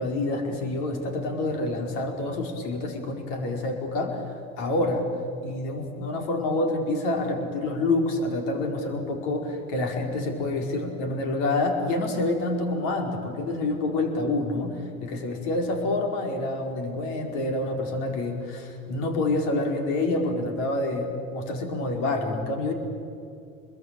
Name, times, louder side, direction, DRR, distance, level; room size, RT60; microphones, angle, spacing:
voice 1, 0.0-4.2 4.6-5.1 5.4-22.7, left 2 dB, 70° left, 3 dB, 4.7 m, -27 dB
29.5 x 22.0 x 9.0 m, 2.5 s
hypercardioid pair, 70°, 38 cm